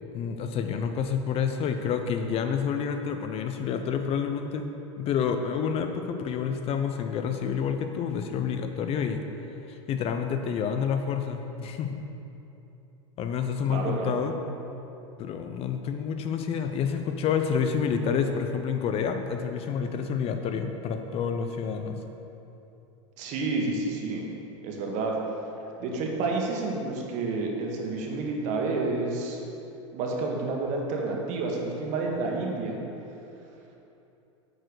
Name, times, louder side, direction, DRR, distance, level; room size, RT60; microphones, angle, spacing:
voice 1, 0.1-4.7 5.0-9.2 9.7-12.0 13.2-14.3 15.2-22.0, left 7 dB, 40° left, 6 dB, 0.6 m, -28 dB
voice 2, 13.7-14.1 23.2-24.3 24.6-25.2 25.6-29.4 29.9-32.8, right 3 dB, 50° right, 0 dB, 1.6 m, -29 dB
8.5 x 4.5 x 6.4 m, 2.9 s
hypercardioid pair, 105°, 16 cm